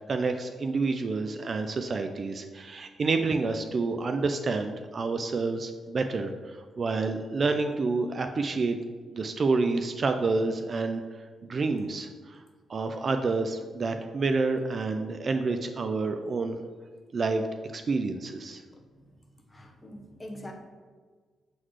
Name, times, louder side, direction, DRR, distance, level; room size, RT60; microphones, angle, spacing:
voice 1, 0.1-8.8 9.1-11.0 11.4-12.4 12.7-16.6 17.1-17.5 17.7-18.6, right 3 dB, 45° right, 7 dB, 0.3 m, -28 dB
voice 2, 19.5-20.5, left 1 dB, 20° left, 1 dB, 0.9 m, -43 dB
7.6 x 3.9 x 3.2 m, 1.5 s
cardioid pair, 105°, 0 cm